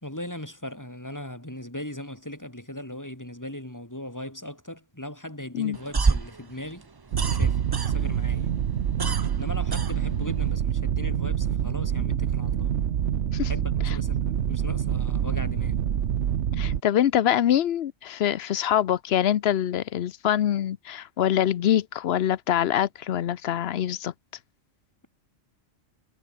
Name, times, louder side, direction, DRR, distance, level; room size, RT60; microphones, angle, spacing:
voice 1, 0.0-6.9 7.3-8.6 9.4-12.7 13.4-15.8, left 1 dB, 15° left, 5.0 m, -38 dB
sound 1, 5.7-8.3 8.6-10.5, right 4 dB, 30° right, 0.5 m, -27 dB
sound 2, 7.1-16.8, right 9 dB, 65° right, 1.1 m, -26 dB
voice 2, 16.6-24.1, left 10 dB, 60° left, 0.8 m, -24 dB
omnidirectional pair, 1.3 m